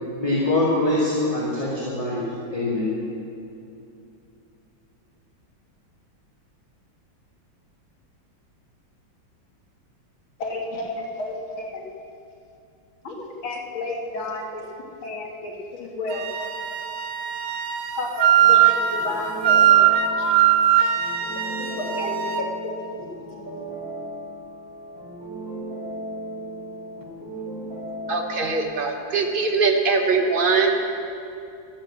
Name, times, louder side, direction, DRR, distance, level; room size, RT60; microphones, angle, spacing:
voice 1, 0.2-2.2 2.5-2.9, left 2 dB, 20° left, -8 dB, 2.2 m, -23 dB
voice 2, 10.4-11.9 13.0-14.6 15.0-16.3 18.0-18.6 18.9-19.8 20.2-20.3 21.6-22.8, left 2 dB, 85° left, -1 dB, 2.6 m, -32 dB
Wind instrument woodwind instrument, 16.1-22.5, right 10 dB, 90° right, 1.5 m, -20 dB
sound 1, 18.3-28.6, right 1 dB, 65° right, 5.1 m, -36 dB
voice 3, 28.1-30.8, right 4 dB, 35° right, 3 dB, 1.0 m, -21 dB
13.0 x 9.0 x 7.5 m, 2.6 s
omnidirectional pair, 2.2 m